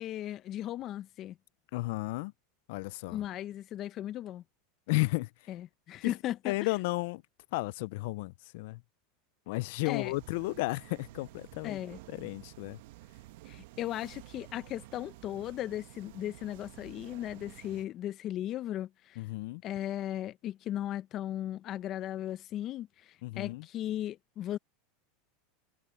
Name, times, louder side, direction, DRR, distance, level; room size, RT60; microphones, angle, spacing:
voice 1, 0.0-1.4 3.1-4.4 5.5-6.5 9.8-10.1 11.6-12.0 13.5-19.2 19.6-24.6, left 12 dB, 40° left, 0.9 m, -37 dB
voice 2, 1.7-2.3 2.7-3.3 4.9-5.3 6.0-6.1 6.5-7.2 7.5-8.8 9.5-11.8 12.1-12.8 19.2-19.6 23.2-23.7, left 23 dB, 65° left, 0.5 m, -33 dB
sound 1, 9.9-17.9, right 17 dB, 70° right, 1.2 m, -51 dB
supercardioid pair, 125°, 0 cm